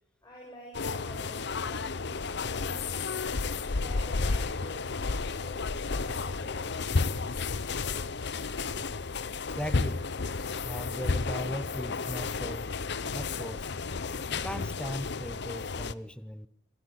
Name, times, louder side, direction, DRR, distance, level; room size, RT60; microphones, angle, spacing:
voice 1, 0.2-3.2 3.8-6.9, left 1 dB, 20° left, -3 dB, 6.5 m, -49 dB
sound 1, 0.7-15.9, left 4 dB, 65° left, 0.8 m, -32 dB
voice 2, 9.6-10.1 10.6-12.7 13.1-13.7 14.3-16.5, equal, 5° left, 13 dB, 0.8 m, -38 dB
26.5 x 14.0 x 8.4 m, 0.71 s
head